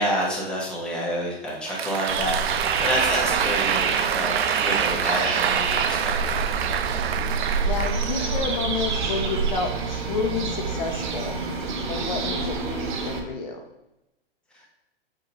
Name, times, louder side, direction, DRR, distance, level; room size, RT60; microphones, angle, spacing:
voice 1, 0.0-6.5 14.5-14.6, equal, 5° left, -4 dB, 1.1 m, -29 dB
Applause, 1.5-8.6, right 9 dB, 85° right, 0.5 m, -26 dB
sound 1, 2.1-13.2, right 5 dB, 50° right, 1.1 m, -28 dB
sound 2, 2.3-13.2, right 2 dB, 70° right, 1.9 m, -36 dB
voice 2, 7.7-11.4 11.9-13.6, left 4 dB, 45° left, 3 dB, 1.0 m, -30 dB
7.3 x 2.8 x 5.5 m, 0.92 s
hypercardioid pair, 145°, 30 cm